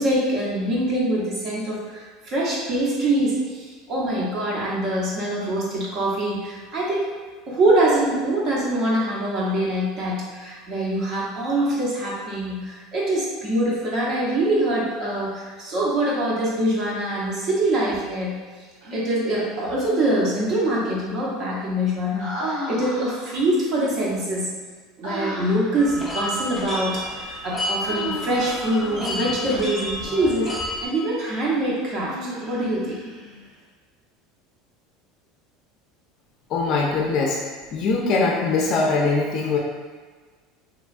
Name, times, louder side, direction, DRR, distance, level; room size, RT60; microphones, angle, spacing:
voice 1, 0.0-7.1 7.5-18.4 18.9-24.5 25.0-32.2 32.4-33.0, right 1 dB, 50° right, -5 dB, 0.7 m, -24 dB
Human voice, 18.8-19.7 22.2-23.5 25.0-25.8 27.8-29.6 31.9-33.5, equal, 80° right, 1.1 m, -33 dB
sound 1, 25.8-30.9, left 1 dB, 5° left, 0.6 m, -31 dB
voice 2, 36.5-37.4 37.7-39.6, left 3 dB, 50° left, -1 dB, 0.4 m, -22 dB
3.0 x 2.2 x 2.4 m, 1.4 s
supercardioid pair, 120°, 0 cm